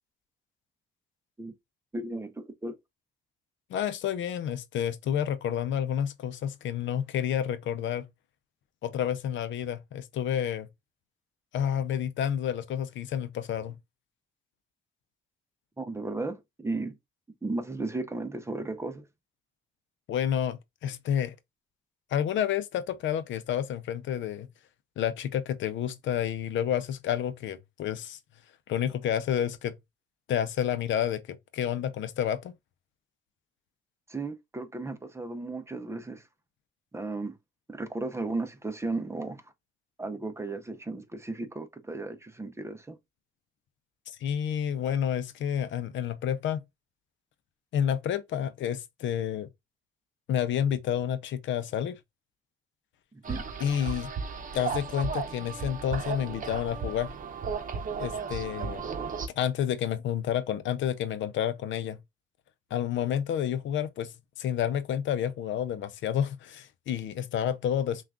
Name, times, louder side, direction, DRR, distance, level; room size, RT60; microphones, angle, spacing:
voice 1, 1.9-2.8 15.8-17.0 17.4-19.1 34.1-36.3 36.9-37.4 37.7-39.5 40.0-43.0 53.3-53.4, right 2 dB, 15° right, 0.6 m, -35 dB
voice 2, 3.7-8.1 8.8-10.7 11.5-13.8 20.1-21.3 22.1-24.5 25.0-28.2 28.7-29.7 30.3-32.5 44.1-46.6 47.7-49.5 50.3-52.0 53.6-54.1 54.5-57.1 58.0-58.8 59.4-62.0 62.7-68.0, left 9 dB, 70° left, 0.6 m, -30 dB
sound 1, 53.2-59.3, right 5 dB, 45° right, 0.8 m, -35 dB
5.7 x 2.4 x 2.4 m
cardioid pair, 90°, 20 cm